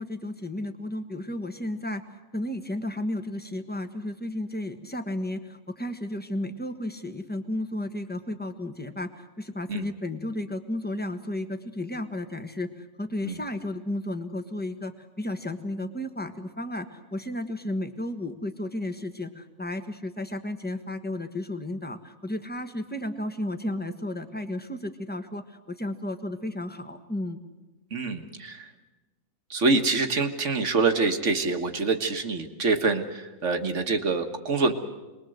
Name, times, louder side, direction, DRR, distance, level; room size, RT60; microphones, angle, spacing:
voice 1, 0.0-2.0 2.3-27.4, left 1 dB, 5° left, 7 dB, 1.3 m, -33 dB
voice 2, 27.9-28.7 29.5-34.7, right 3 dB, 55° right, 7 dB, 1.8 m, -25 dB
27.0 x 21.0 x 7.9 m, 1.2 s
omnidirectional pair, 1.5 m